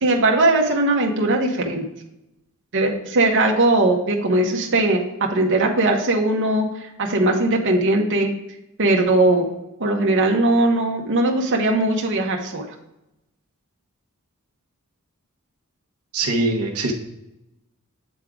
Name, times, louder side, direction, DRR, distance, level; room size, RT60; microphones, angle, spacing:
voice 1, 0.0-1.8 2.7-6.7 7.0-8.3 8.8-9.5 9.8-12.7, right 2 dB, 60° right, 1 dB, 1.0 m, -19 dB
voice 2, 16.1-16.9, right 2 dB, 80° right, 2 dB, 0.9 m, -22 dB
8.2 x 3.7 x 4.7 m, 0.90 s
head